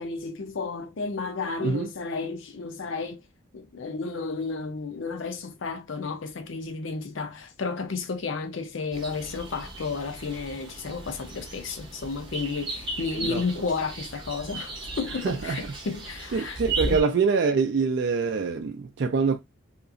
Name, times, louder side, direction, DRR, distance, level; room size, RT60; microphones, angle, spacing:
voice 1, 0.0-3.2 3.5-16.6 16.9-17.0, left 4 dB, 65° left, 0.5 m, -32 dB
sound 1, 8.9-17.0, right 2 dB, 25° right, 0.7 m, -36 dB
voice 2, 15.2-15.6 16.3-19.4, right 5 dB, 55° right, 0.3 m, -25 dB
2.9 x 2.4 x 2.4 m
head